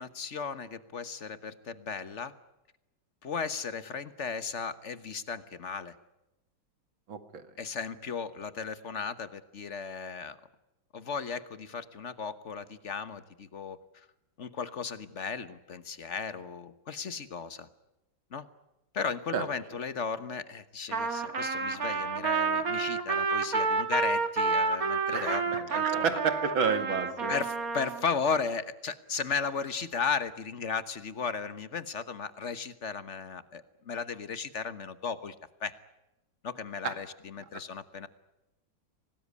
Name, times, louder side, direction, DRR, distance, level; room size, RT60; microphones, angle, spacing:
voice 1, 0.0-2.3 3.2-5.9 7.6-10.4 10.9-14.1 14.4-17.7 18.3-18.5 18.9-26.2 27.3-35.3 35.6-35.7 36.4-38.1, left 5 dB, 40° left, 13 dB, 1.3 m, -35 dB
voice 2, 7.1-7.4 19.3-19.4 25.1-27.4 36.8-36.9, right 6 dB, 80° right, 9 dB, 2.8 m, -30 dB
Trumpet, 20.9-28.0, right 4 dB, 45° right, 2.3 m, -29 dB
25.0 x 19.0 x 9.6 m, 0.94 s
omnidirectional pair, 2.1 m